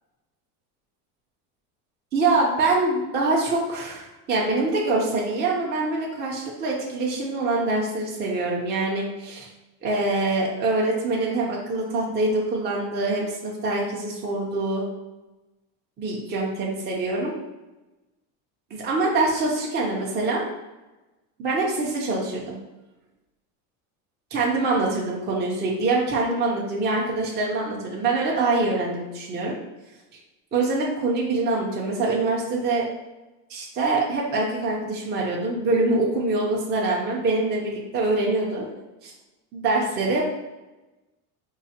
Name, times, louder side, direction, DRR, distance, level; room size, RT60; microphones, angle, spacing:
voice 1, 2.1-9.5 9.8-14.8 16.0-17.4 18.7-20.4 21.4-22.6 24.3-29.6 30.5-32.9 33.5-38.6 39.0-39.1 39.5-40.2, right 2 dB, 20° right, -3 dB, 0.6 m, -24 dB
4.7 x 2.2 x 2.8 m, 1.1 s
supercardioid pair, 125°, 45 cm